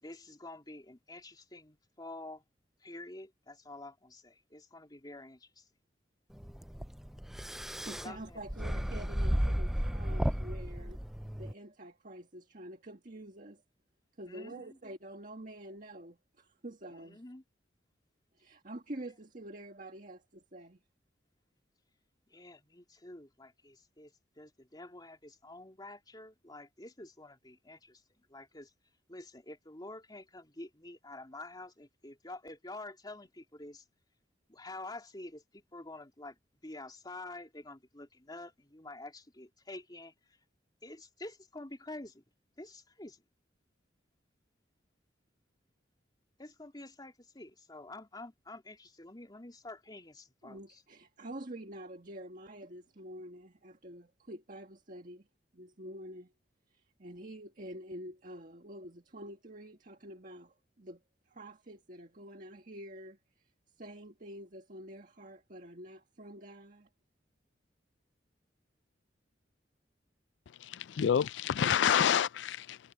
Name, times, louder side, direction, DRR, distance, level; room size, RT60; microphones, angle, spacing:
voice 1, 0.0-2.4 2.8-5.7 8.0-8.4 14.3-14.8 16.9-17.4 22.3-28.0 28.3-28.7 29.1-33.8 34.5-36.4 36.6-40.4 40.8-42.2 42.6-43.2 46.4-50.8, left 2 dB, 25° left, 3.2 m, -48 dB
sound 1, 6.4-11.5, equal, ahead, 0.3 m, -34 dB
voice 2, 7.8-11.0 11.3-13.6 14.2-17.2 18.3-20.8 50.4-55.3 55.5-56.3 56.7-61.0 61.3-63.2 63.8-66.9, right 1 dB, 50° right, 1.6 m, -47 dB
voice 3, 70.6-72.8, left 8 dB, 85° left, 0.4 m, -28 dB
head